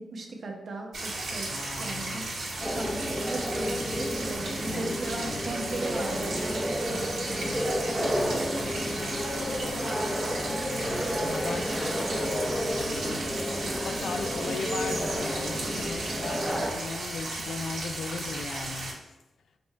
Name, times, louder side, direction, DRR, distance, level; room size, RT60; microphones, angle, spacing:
voice 1, 0.0-2.3 2.7-6.4 6.9-7.5, right 2 dB, 55° right, 1 dB, 0.8 m, -37 dB
sound 1, 0.9-18.9, right 2 dB, 85° right, 1.5 m, -35 dB
voice 2, 1.5-2.5 3.8-4.1 4.5-5.8 6.8-7.0 7.3-19.2, left 5 dB, 90° left, 8 dB, 0.3 m, -39 dB
sound 2, 2.6-16.7, equal, ahead, 0.6 m, -31 dB
5.2 x 2.3 x 4.4 m, 1.0 s
wide cardioid pair, 120°, 0 cm